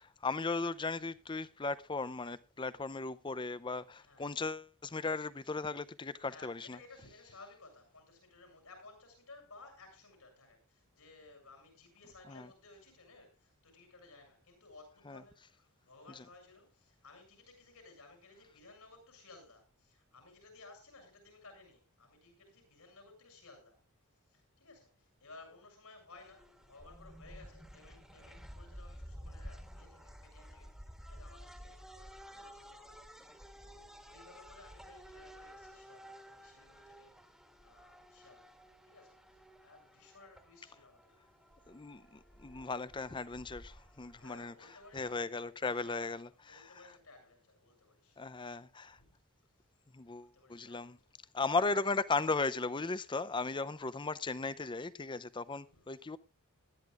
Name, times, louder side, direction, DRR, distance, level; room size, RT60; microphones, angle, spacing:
voice 1, 0.2-6.8 12.3-12.5 15.1-15.2 41.7-44.5 44.9-46.3 48.2-49.0 49.9-51.0 51.3-56.2, left 3 dB, 20° left, 0.5 m, -36 dB
voice 2, 3.9-4.3 6.2-23.8 24.3-38.6 38.8-41.1 44.2-45.3 45.6-48.2 49.0-49.1 49.6-49.7 50.1-51.1 55.6-55.9, left 3 dB, 75° left, 7.1 m, -58 dB
sound 1, 26.1-45.1, equal, ahead, 1.7 m, -53 dB
20.5 x 12.5 x 2.4 m
head